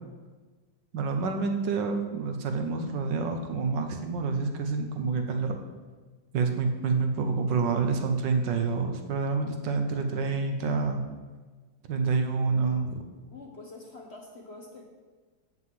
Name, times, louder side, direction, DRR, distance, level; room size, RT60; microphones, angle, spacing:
voice 1, 0.9-5.5 6.3-11.0 11.9-13.0, right 4 dB, 70° right, 5 dB, 1.5 m, -28 dB
voice 2, 13.3-14.8, left 2 dB, 40° left, 1 dB, 1.0 m, -45 dB
7.8 x 5.8 x 7.6 m, 1.3 s
omnidirectional pair, 2.1 m